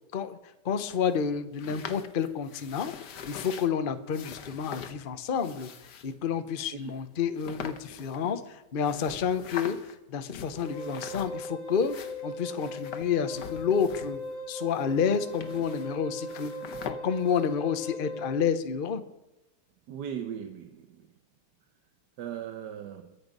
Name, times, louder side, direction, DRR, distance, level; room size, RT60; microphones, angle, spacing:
voice 1, 0.6-2.9 3.3-5.7 6.0-9.8 10.1-12.0 12.2-14.2 14.5-16.5 16.8-19.0, left 7 dB, 40° left, 0.8 m, -29 dB
sound 1, 0.9-3.7 4.1-5.0 5.3-6.1 6.8-6.9 7.3-8.5 8.8-9.9 10.3-11.5 11.7-14.3 14.6-16.0 16.2-16.9, left 7 dB, 75° left, 1.7 m, -43 dB
Wind instrument woodwind instrument, 10.6-18.4, left 1 dB, 10° right, 3.4 m, -39 dB
voice 2, 19.9-21.1 22.2-23.2, right 9 dB, 75° right, 1.4 m, -38 dB
22.5 x 8.1 x 5.4 m
omnidirectional pair, 1.8 m